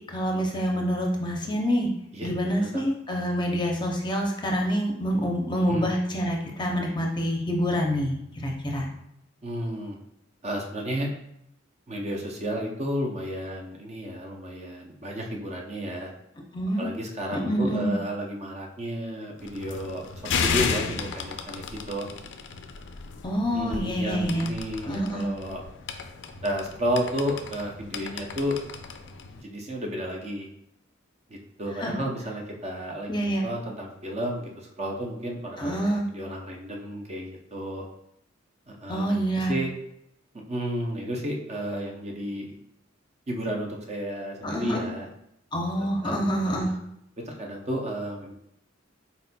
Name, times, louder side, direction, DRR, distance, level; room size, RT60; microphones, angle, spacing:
voice 1, 0.1-1.9 2.2-8.9 16.5-16.9 17.3-17.9 23.2-24.5 24.8-25.3 31.8-31.9 33.1-33.4 35.6-36.1 38.9-39.5 44.4-44.8 45.5-46.7, equal, 25° left, 0 dB, 0.6 m, -27 dB
voice 2, 2.1-2.8 5.7-5.8 9.4-10.0 10.4-11.1 11.9-16.1 16.8-20.0 20.4-22.1 23.5-25.6 26.4-28.6 29.4-30.5 31.3-37.8 38.7-39.7 40.5-42.6 43.3-45.1 46.0-46.8 47.3-48.3, equal, 35° right, 0 dB, 0.6 m, -32 dB
sound 1, 19.4-29.4, left 5 dB, 65° left, 0.4 m, -34 dB
4.2 x 4.1 x 2.2 m, 0.77 s
head